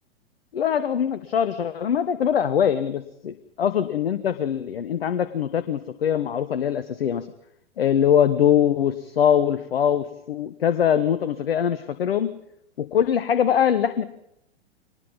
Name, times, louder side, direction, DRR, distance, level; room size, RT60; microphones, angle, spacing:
voice 1, 0.5-7.3 7.8-12.4 12.8-14.0, left 9 dB, 60° left, 12 dB, 1.2 m, -22 dB
24.0 x 20.0 x 5.5 m, 0.80 s
figure-of-eight pair, 105°, 34 cm